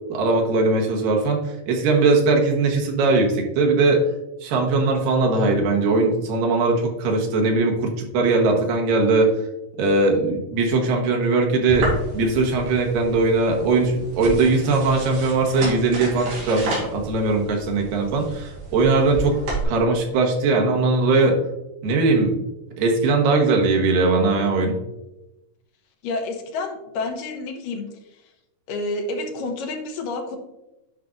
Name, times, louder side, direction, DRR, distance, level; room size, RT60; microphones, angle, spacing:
voice 1, 0.1-1.4 1.7-4.0 4.4-9.3 9.8-19.4 19.7-21.4 21.8-22.4 22.8-24.8, right 3 dB, 85° right, 1 dB, 3.0 m, -20 dB
sound 1, 11.7-19.6, right 2 dB, 65° right, 4.3 m, -32 dB
voice 2, 26.0-27.8 28.7-30.4, left 2 dB, 80° left, 3 dB, 2.6 m, -29 dB
9.9 x 5.9 x 2.5 m, 0.93 s
omnidirectional pair, 3.9 m